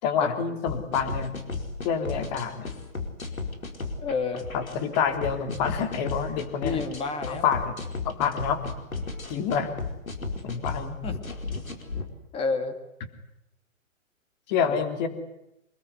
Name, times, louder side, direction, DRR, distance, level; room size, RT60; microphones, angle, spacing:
voice 1, 0.0-1.3 1.8-2.7 4.5-6.8 7.3-7.7 8.0-8.6 9.3-9.7 10.4-11.0 14.5-15.1, left 7 dB, 30° left, 8 dB, 3.5 m, -27 dB
sound 1, 0.7-12.1, left 3 dB, 85° left, 4.9 m, -34 dB
voice 2, 4.0-4.5 6.6-7.5 11.0-11.2 12.3-12.7 14.7-14.8, left 4 dB, 15° left, 9 dB, 2.2 m, -29 dB
25.5 x 21.5 x 9.8 m, 0.83 s
hypercardioid pair, 140°, 41 cm